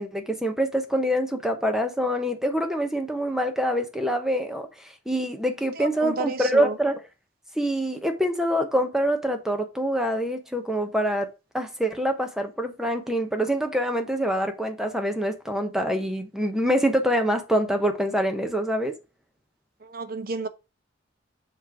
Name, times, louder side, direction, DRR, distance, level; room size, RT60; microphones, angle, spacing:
voice 1, 0.0-7.0 7.5-19.0, equal, ahead, 0.9 m, -25 dB
voice 2, 5.8-6.8 19.8-20.5, right 3 dB, 45° right, 0.8 m, -31 dB
7.1 x 3.2 x 5.9 m
head